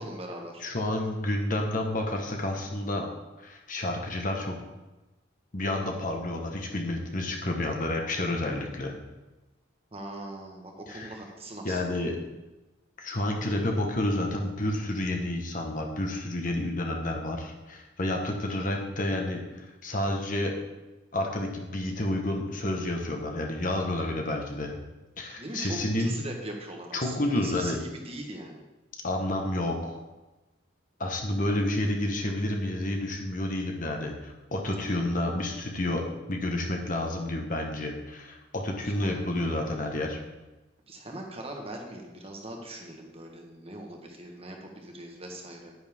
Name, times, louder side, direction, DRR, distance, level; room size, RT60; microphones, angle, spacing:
voice 1, 0.0-0.6 9.9-12.0 25.4-27.8 28.0-28.6 31.5-31.8 38.8-39.2 40.9-45.7, right 1 dB, 30° right, 1 dB, 1.5 m, -41 dB
voice 2, 0.6-3.1 3.4-4.6 5.5-8.9 10.9-11.1 11.6-12.2 13.0-20.6 21.1-24.8 25.2-26.2 26.9-27.8 29.0-30.0 31.0-40.2, left 1 dB, 45° left, 2 dB, 1.4 m, -30 dB
10.0 x 9.8 x 3.7 m, 1.1 s
head